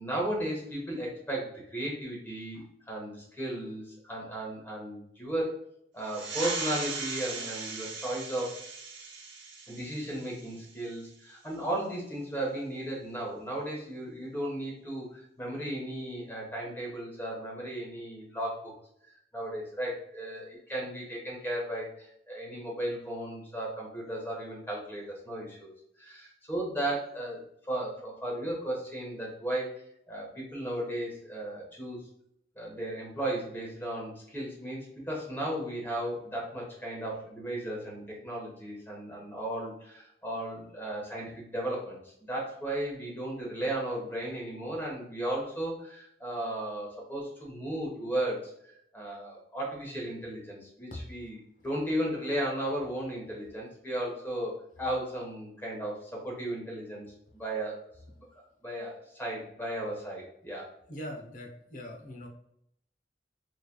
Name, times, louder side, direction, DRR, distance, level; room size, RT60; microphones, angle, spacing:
voice 1, 0.0-8.5 9.7-18.7 19.3-25.7 26.0-27.4 27.7-32.0 32.6-48.5 48.9-57.1 57.3-57.8 58.2-58.3 58.6-60.7, right 1 dB, 10° left, -3 dB, 1.1 m, -35 dB
sound 1, 6.0-11.1, right 4 dB, 85° right, 0.8 m, -38 dB
voice 2, 60.9-62.3, left 1 dB, 45° left, 0 dB, 0.8 m, -41 dB
4.2 x 3.2 x 2.2 m, 0.72 s
head